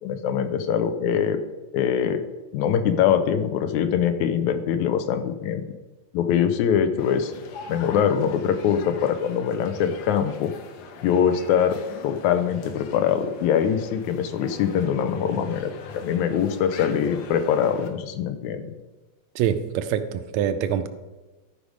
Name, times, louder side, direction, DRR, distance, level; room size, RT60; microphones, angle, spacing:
voice 1, 0.0-1.4 1.7-2.2 2.5-5.6 6.1-7.3 7.7-10.5 11.0-18.7, left 8 dB, 90° left, 2.1 m, -23 dB
sound 1, 7.0-17.9, left 4 dB, 70° left, 1.9 m, -41 dB
voice 2, 19.3-20.9, right 9 dB, 80° right, 1.8 m, -25 dB
13.5 x 5.1 x 5.0 m
omnidirectional pair, 3.3 m